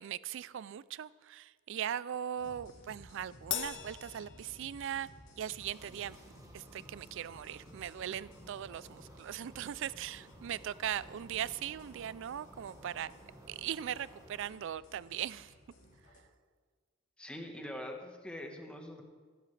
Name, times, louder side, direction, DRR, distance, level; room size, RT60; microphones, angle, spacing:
voice 1, 0.0-5.1 5.4-6.2 6.5-13.1 13.5-15.5, right 10 dB, 65° right, 0.3 m, -39 dB
sound 1, 2.4-16.2, equal, 80° left, 2.9 m, -57 dB
Crash cymbal, 3.5-5.2, left 10 dB, 65° left, 0.7 m, -40 dB
sound 2, 5.6-14.5, right 1 dB, 15° right, 1.2 m, -56 dB
voice 2, 17.2-19.0, left 1 dB, 5° left, 1.3 m, -43 dB
15.5 x 12.5 x 3.3 m
head